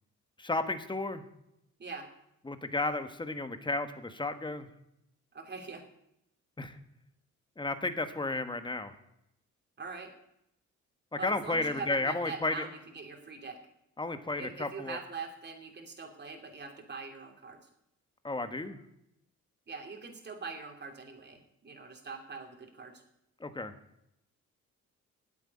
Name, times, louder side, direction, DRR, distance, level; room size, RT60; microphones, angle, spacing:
voice 1, 0.4-1.2 2.4-4.7 6.6-6.8 7.6-8.9 11.2-12.6 14.0-15.0 18.2-18.8 23.4-23.7, left 2 dB, 15° left, 9 dB, 1.3 m, -33 dB
voice 2, 5.3-5.8 9.8-10.1 11.1-13.6 14.4-17.6 19.7-23.0, right 4 dB, 35° right, 3 dB, 2.9 m, -43 dB
9.3 x 8.4 x 9.7 m, 0.80 s
cardioid pair, 90°, 30 cm